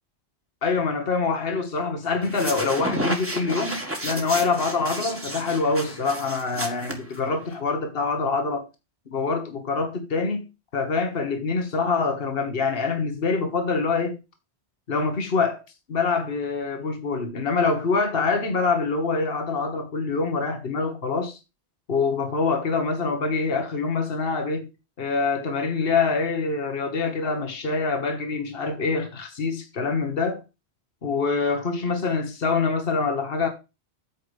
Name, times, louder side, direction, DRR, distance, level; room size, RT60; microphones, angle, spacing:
voice 1, 0.6-8.7 9.1-10.5 10.7-14.2 14.9-15.6 15.9-21.4 21.9-24.7 25.0-30.4 31.0-33.5, left 4 dB, 60° left, 1.6 m, -25 dB
sound 1, 2.2-7.6, right 1 dB, 10° right, 1.7 m, -32 dB
8.7 x 4.9 x 5.2 m
omnidirectional pair, 1.1 m